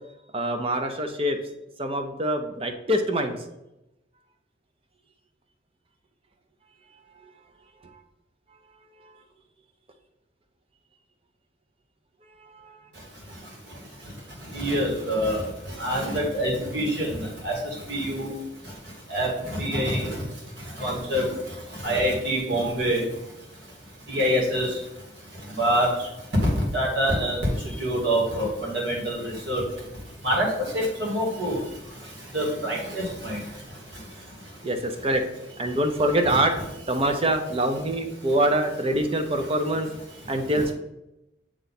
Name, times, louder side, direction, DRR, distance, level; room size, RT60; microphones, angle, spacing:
voice 1, 0.3-1.4 1.8-3.3 9.0-9.1 12.4-12.8 34.6-35.2 35.5-39.9 40.3-40.7, right 1 dB, 30° right, 6 dB, 0.6 m, -25 dB
voice 2, 14.5-15.4 15.8-17.1 17.4-17.5 17.9-18.3 19.1-20.1 20.8-21.2 21.8-23.0 24.1-24.7 25.6-25.9 26.7-27.5 27.8-29.2 29.5-29.6 30.2-30.5 30.7-31.6 32.3-33.4 36.3-36.4, equal, 70° right, -2 dB, 2.0 m, -25 dB
7.8 x 3.1 x 4.1 m, 0.90 s
head